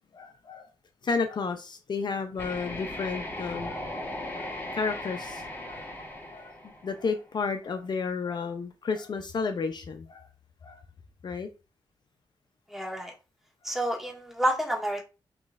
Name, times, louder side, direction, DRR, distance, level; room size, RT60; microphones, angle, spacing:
voice 1, 0.1-0.7 1.0-3.8 4.4-5.9 6.3-6.5 6.8-10.3 10.6-10.8 11.2-11.5, left 4 dB, 55° left, 0.5 m, -32 dB
sound 1, 2.4-7.3, left 1 dB, 20° left, 1.3 m, -38 dB
voice 2, 12.7-13.1 13.6-15.0, right 1 dB, 5° right, 1.8 m, -29 dB
5.9 x 3.1 x 2.5 m
cardioid pair, 85°, 9 cm